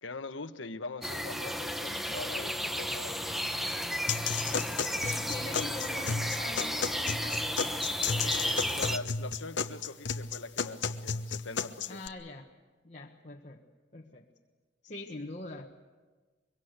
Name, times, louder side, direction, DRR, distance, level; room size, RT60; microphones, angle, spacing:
voice 1, 0.0-3.2 8.2-12.0, left 3 dB, 90° left, 10 dB, 1.2 m, -42 dB
sound 1, 1.0-9.0, equal, ahead, 0.9 m, -33 dB
sound 2, 4.1-12.1, left 5 dB, 65° left, 1.0 m, -33 dB
voice 2, 4.1-4.7 5.0-7.4 11.9-12.5 12.8-13.6 13.9-14.3 14.8-15.7, left 2 dB, 35° left, -2 dB, 1.4 m, -43 dB
24.0 x 23.5 x 8.1 m, 1.3 s
head